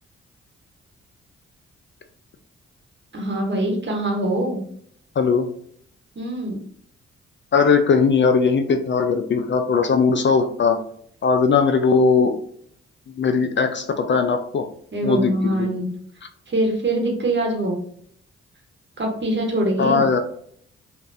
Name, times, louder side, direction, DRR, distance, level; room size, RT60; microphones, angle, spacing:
voice 1, 3.1-4.6 6.1-6.6 14.9-16.0 16.5-17.8 19.0-20.1, right 1 dB, 40° right, 1 dB, 1.2 m, -23 dB
voice 2, 5.2-5.5 7.5-10.8 11.2-12.3 13.2-14.7 15.0-15.3 15.6-15.7 19.8-20.2, left 5 dB, 40° left, 7 dB, 0.4 m, -19 dB
3.3 x 2.4 x 2.6 m, 0.64 s
supercardioid pair, 45°, 29 cm